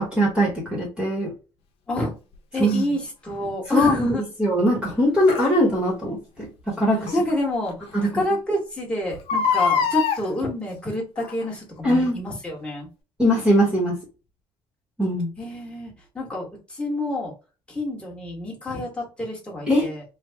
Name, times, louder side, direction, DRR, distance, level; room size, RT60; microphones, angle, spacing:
voice 1, 0.0-1.3 2.6-2.9 3.7-7.1 7.9-8.1 11.8-12.2 13.2-13.9 15.0-15.3 19.7-19.9, equal, 10° right, -3 dB, 1.3 m, -21 dB
voice 2, 2.5-4.2 7.1-7.7 8.0-12.9 15.4-17.3 17.7-20.0, left 1 dB, 10° left, -2 dB, 1.4 m, -28 dB
Crying sobbing, 2.7-2.8 5.3-5.5 7.1-7.2 7.7-7.8 8.0-8.1 9.1-10.2 11.2-11.5 12.1-12.2, left 6 dB, 70° left, 0.7 m, -23 dB
3.4 x 2.3 x 3.4 m, 0.33 s
cardioid pair, 160°, 10 cm